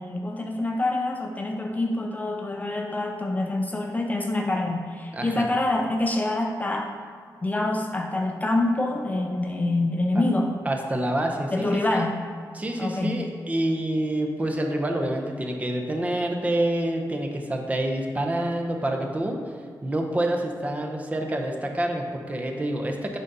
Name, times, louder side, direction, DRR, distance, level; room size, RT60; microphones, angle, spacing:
voice 1, 0.0-6.9 7.4-10.6 11.5-12.3 12.8-13.2, left 2 dB, 20° left, 2 dB, 0.5 m, -26 dB
voice 2, 5.1-5.5 10.2-10.3 10.7-12.2 12.5-19.4 19.8-23.2, right 1 dB, 20° right, 2 dB, 0.7 m, -27 dB
10.5 x 4.0 x 3.9 m, 2.1 s
wide cardioid pair, 160°, 7 cm